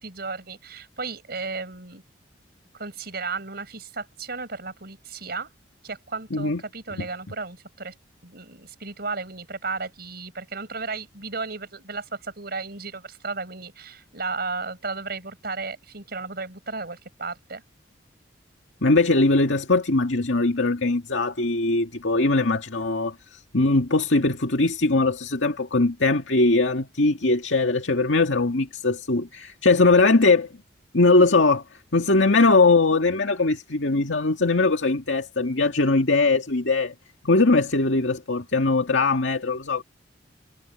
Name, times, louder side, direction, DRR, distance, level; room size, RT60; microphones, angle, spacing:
voice 1, 0.0-2.0 2.7-5.5 5.8-7.9 8.2-17.6, right 4 dB, 55° right, 5.4 m, -34 dB
voice 2, 6.3-6.6 18.8-30.5 30.9-31.6 31.9-36.9 37.2-39.8, left 3 dB, 80° left, 2.1 m, -21 dB
head